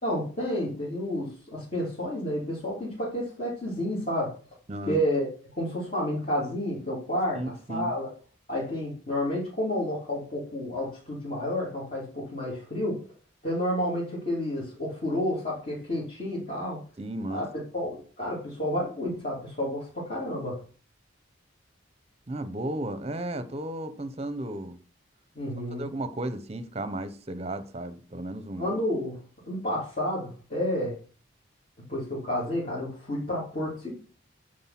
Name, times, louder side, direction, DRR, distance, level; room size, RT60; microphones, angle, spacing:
voice 1, 0.0-4.3 4.8-5.3 5.6-8.1 8.5-13.0 13.4-16.8 17.3-17.5 17.7-20.6 25.3-25.9 28.6-29.2 29.4-31.0 31.9-33.9, left 1 dB, 35° left, 3.2 m, -30 dB
voice 2, 7.3-7.9 17.0-17.4 22.3-24.8 25.8-28.7, right 1 dB, 30° right, 0.9 m, -34 dB
9.7 x 5.0 x 6.0 m
head